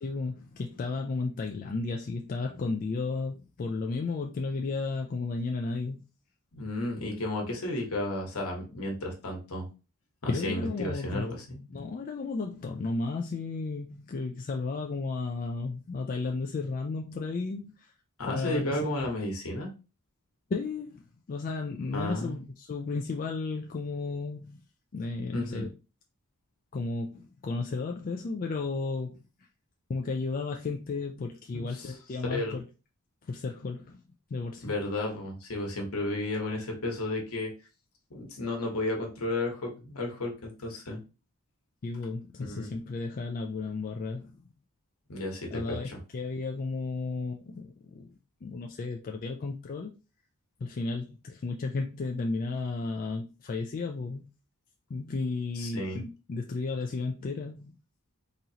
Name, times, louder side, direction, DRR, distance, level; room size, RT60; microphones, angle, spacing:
voice 1, 0.0-6.0 10.3-11.4 11.7-17.9 18.3-18.9 20.5-24.7 24.9-25.7 26.7-29.2 29.9-32.6 33.2-34.0 34.3-34.8 41.8-44.4 45.5-49.9 50.6-54.3 54.9-57.7, left 3 dB, 40° left, 0.4 m, -33 dB
voice 2, 6.5-9.6 10.2-11.6 18.2-19.7 21.9-22.4 25.3-25.7 31.5-31.9 32.3-32.6 34.6-37.5 38.1-41.0 42.4-42.7 45.1-46.0 55.6-56.0, left 1 dB, 70° left, 1.3 m, -33 dB
4.0 x 2.9 x 2.8 m
head